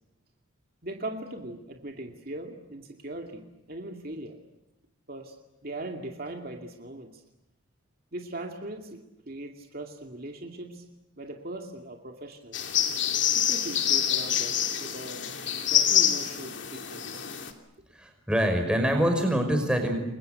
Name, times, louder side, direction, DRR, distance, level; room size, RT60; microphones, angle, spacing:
voice 1, 0.8-3.4 3.7-4.4 5.1-5.4 5.6-7.2 8.1-10.8 11.2-12.6 13.4-15.3 15.7-17.2, right 1 dB, 45° right, 3 dB, 2.4 m, -39 dB
sound 1, 12.5-17.5, left 9 dB, 60° left, 3.0 m, -26 dB
voice 2, 17.9-20.0, equal, 5° right, 4 dB, 5.5 m, -25 dB
29.5 x 22.5 x 8.0 m, 0.97 s
head